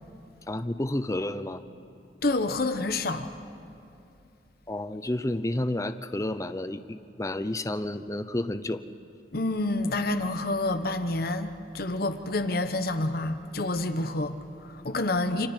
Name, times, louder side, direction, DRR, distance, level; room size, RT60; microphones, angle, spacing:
voice 1, 0.5-1.6 4.7-8.8, left 1 dB, 15° left, 0.6 m, -30 dB
voice 2, 2.2-3.3 9.3-15.5, left 2 dB, 55° left, 1.1 m, -28 dB
29.0 x 26.5 x 4.5 m
head